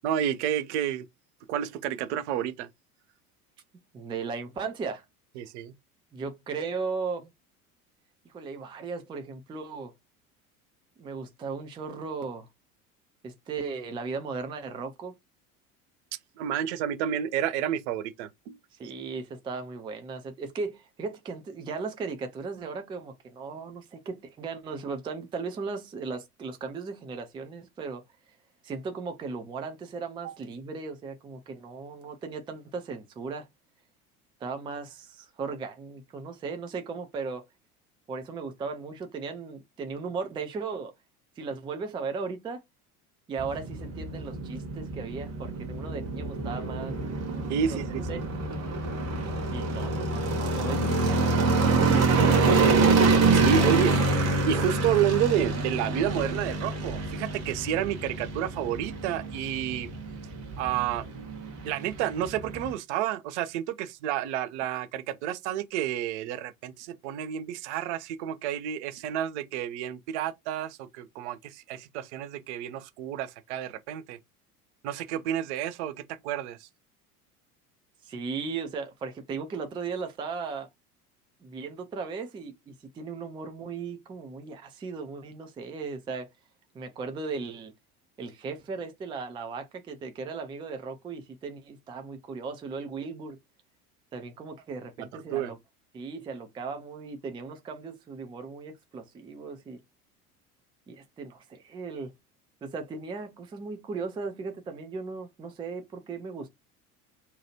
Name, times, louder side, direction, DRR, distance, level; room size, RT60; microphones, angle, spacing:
voice 1, 0.0-1.0 1.5-2.7 5.4-5.7 16.4-18.6 30.2-30.3 47.5-48.2 53.3-59.9 60.6-61.3 61.6-74.2 74.8-76.7 95.0-95.5, right 10 dB, 50° right, 0.6 m, -30 dB
voice 2, 3.9-5.0 6.1-7.3 8.3-9.9 11.0-12.5 13.2-15.2 18.7-28.0 28.6-33.5 34.4-37.4 38.1-40.9 41.4-42.6 43.3-47.0 47.6-47.8 48.1-48.3 49.5-52.7 53.6-53.9 78.0-80.7 81.4-86.3 86.7-87.7 88.2-93.4 94.1-95.6 95.9-99.8 100.9-102.1 102.6-106.5, right 4 dB, 10° right, 0.4 m, -37 dB
sound 1, 43.4-62.7, right 3 dB, 35° right, 1.1 m, -26 dB
2.9 x 2.3 x 2.9 m
figure-of-eight pair, 70°, 45 cm